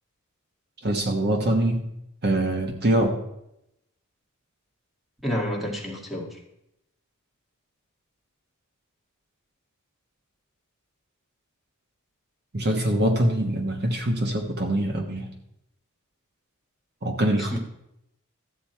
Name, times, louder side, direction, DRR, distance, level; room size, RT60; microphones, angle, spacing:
voice 1, 0.8-1.9 2.2-3.1 12.5-15.3 17.0-17.6, right 1 dB, 50° right, 3 dB, 1.3 m, -24 dB
voice 2, 5.2-6.4 17.4-17.6, equal, ahead, -2 dB, 2.1 m, -29 dB
13.5 x 8.8 x 4.5 m, 0.81 s
head